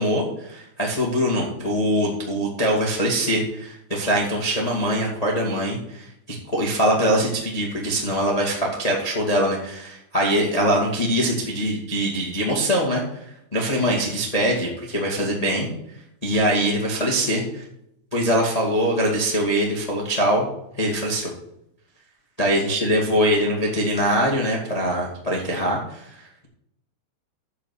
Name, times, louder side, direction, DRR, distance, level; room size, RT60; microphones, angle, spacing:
voice 1, 0.0-13.2 13.5-15.7 16.2-17.6 18.1-20.5 20.8-21.3 22.4-26.4, equal, 65° left, -2 dB, 0.3 m, -23 dB
10.0 x 7.3 x 6.4 m, 0.80 s
omnidirectional pair, 5.1 m